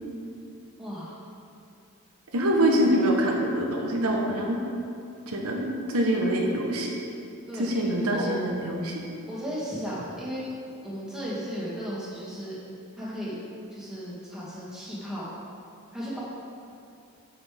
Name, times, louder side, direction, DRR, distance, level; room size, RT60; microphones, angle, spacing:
voice 1, 0.8-1.2 7.5-7.7 8.1-8.3 9.3-10.4 10.8-12.6 13.0-13.3 13.7-15.3 15.9-16.2, equal, 5° right, -9 dB, 2.1 m, -35 dB
voice 2, 2.3-4.6 5.3-6.9 7.5-9.0, right 1 dB, 80° right, 0 dB, 1.0 m, -25 dB
9.7 x 6.8 x 3.5 m, 2.5 s
head